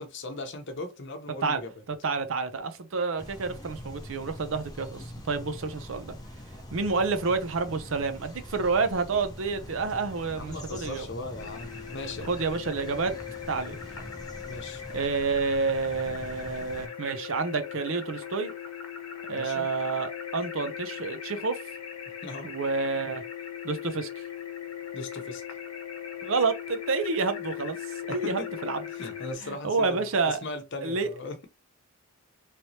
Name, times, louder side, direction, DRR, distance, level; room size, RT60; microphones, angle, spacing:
voice 1, 0.0-1.7 10.3-12.4 14.4-14.8 19.3-19.7 22.2-22.5 24.9-25.4 28.1-28.5 28.9-31.5, left 2 dB, 55° left, 0.8 m, -38 dB
voice 2, 2.0-6.2 6.7-11.1 12.3-13.1 13.5-13.8 14.9-18.5 19.3-21.6 22.4-23.2 23.6-24.2 26.2-27.8 28.1-28.8 29.4-30.4 30.8-31.1, right 4 dB, 65° right, 0.6 m, -29 dB
sound 1, 3.2-16.9, equal, 20° left, 0.7 m, -43 dB
sound 2, 11.4-29.3, left 9 dB, 85° left, 0.9 m, -39 dB
3.2 x 3.0 x 2.8 m
head